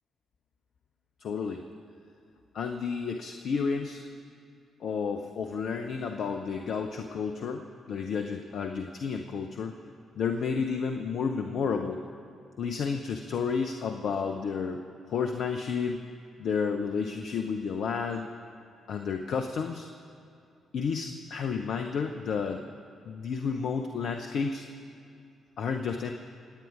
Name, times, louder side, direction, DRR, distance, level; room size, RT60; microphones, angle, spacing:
voice 1, 1.2-1.6 2.5-4.0 4.8-9.8 10.1-12.0 12.6-14.8 15.1-16.0 16.4-18.3 18.9-19.9 20.7-22.6 23.0-24.6 25.6-26.1, left 5 dB, 60° left, 5 dB, 0.8 m, -31 dB
27.5 x 9.4 x 4.9 m, 2.6 s
hypercardioid pair, 40°, 0 cm